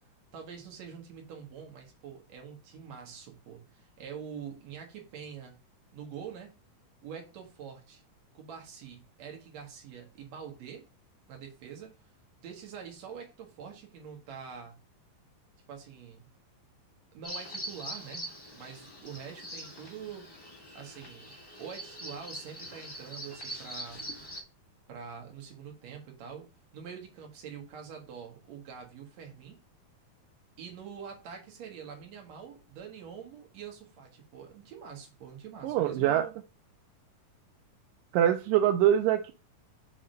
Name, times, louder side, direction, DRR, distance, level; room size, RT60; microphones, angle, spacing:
voice 1, 0.3-5.6 5.9-6.5 7.0-8.0 8.3-10.8 11.3-11.9 12.4-14.8 15.7-16.2 17.1-18.3 18.5-20.3 20.7-24.0 24.9-26.5 26.7-29.6 30.6-36.3, right 7 dB, 60° right, 2.7 m, -45 dB
Bird vocalization bird call bird song, 17.2-24.4, equal, 15° left, 0.8 m, -43 dB
voice 2, 35.6-36.3 38.1-39.3, right 11 dB, 85° right, 2.2 m, -24 dB
5.9 x 3.7 x 5.2 m
omnidirectional pair, 3.8 m